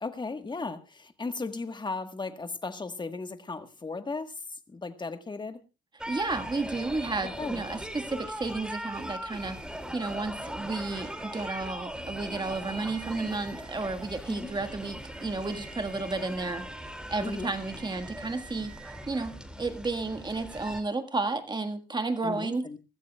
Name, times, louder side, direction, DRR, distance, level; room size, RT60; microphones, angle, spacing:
voice 1, 0.0-4.3 4.7-5.6 7.4-7.6 14.3-14.5 17.2-17.5 22.2-22.8, left 3 dB, 20° left, 9 dB, 1.4 m, -36 dB
sound 1, 6.0-20.8, equal, 5° right, 2.5 m, -40 dB
voice 2, 6.1-9.6 9.9-16.6 17.1-18.7 19.1-22.7, right 3 dB, 20° right, 8 dB, 1.7 m, -32 dB
sound 2, 10.3-11.9 12.3-12.4 12.6-14.2 14.7-19.1, right 6 dB, 85° right, 2.0 m, -52 dB
23.0 x 14.0 x 2.3 m, 0.27 s
cardioid pair, 90°, 20 cm